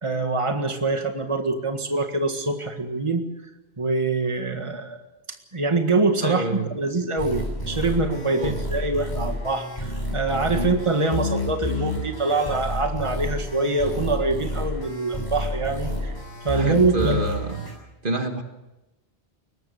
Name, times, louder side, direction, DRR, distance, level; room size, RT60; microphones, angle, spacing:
voice 1, 0.0-3.3 3.8-5.0 5.5-16.1 16.4-17.2, right 3 dB, 30° right, 5 dB, 1.8 m, -24 dB
voice 2, 6.2-6.7 8.3-8.6 10.5-10.8 16.5-17.7 18.0-18.4, right 2 dB, 55° right, 5 dB, 1.9 m, -28 dB
sound 1, 7.2-17.7, left 1 dB, 45° left, 7.6 m, -30 dB
22.5 x 19.0 x 6.9 m, 1.0 s
omnidirectional pair, 1.1 m